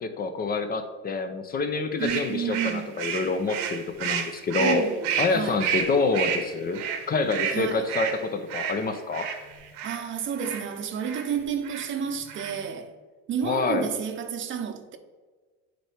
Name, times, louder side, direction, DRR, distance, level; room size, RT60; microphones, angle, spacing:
voice 1, 0.0-4.8 5.2-6.8 7.1-9.3 13.4-13.9, left 3 dB, 30° left, 0.5 m, -27 dB
voice 2, 2.0-3.0 4.6-5.6 7.5-7.9 9.8-12.9 13.3-15.0, right 7 dB, 40° right, 0.7 m, -31 dB
sound 1, 2.0-10.0 10.4-10.7 11.0-11.3 11.6-11.9 12.2-12.7, right 7 dB, 75° right, 1.0 m, -31 dB
7.6 x 4.4 x 3.3 m
supercardioid pair, 100°, 31 cm